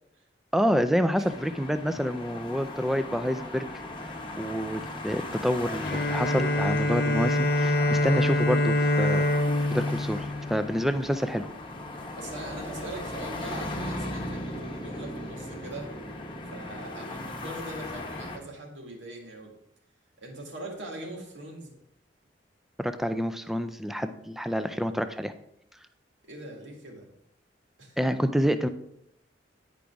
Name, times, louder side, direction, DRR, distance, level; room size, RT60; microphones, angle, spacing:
voice 1, 0.5-3.7 4.4-9.3 9.7-11.5 22.8-25.3 28.0-28.7, equal, ahead, 9 dB, 0.4 m, -28 dB
sound 1, 1.2-18.4, left 1 dB, 25° left, 0.9 m, -38 dB
Bowed string instrument, 5.8-11.3, left 1 dB, 55° left, 0.6 m, -25 dB
voice 2, 12.1-15.9 16.5-19.5 20.2-21.7 26.3-27.1 27.8-28.0, right 1 dB, 80° right, 0 dB, 1.9 m, -41 dB
10.0 x 5.1 x 3.5 m, 0.77 s
head